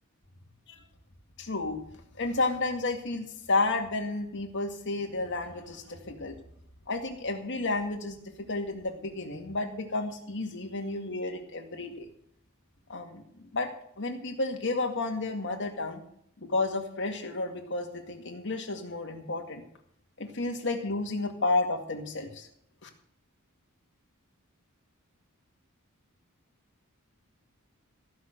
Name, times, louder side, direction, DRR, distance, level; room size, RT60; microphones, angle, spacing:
voice 1, 1.4-1.8 2.2-6.4 6.9-12.1 12.9-16.0 16.4-19.6 20.2-22.5 22.8-22.9, left 3 dB, 60° left, 3 dB, 2.1 m, -32 dB
15.0 x 6.2 x 7.9 m, 0.69 s
head